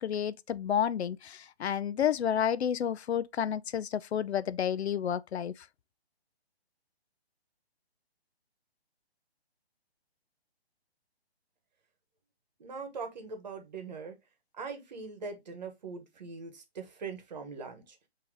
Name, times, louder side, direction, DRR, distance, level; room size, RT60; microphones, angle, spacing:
voice 1, 0.0-5.7, left 9 dB, 80° left, 0.5 m, -30 dB
voice 2, 12.6-14.2 14.5-18.0, right 4 dB, 40° right, 1.1 m, -41 dB
4.7 x 2.9 x 3.7 m
hypercardioid pair, 165°, 32 cm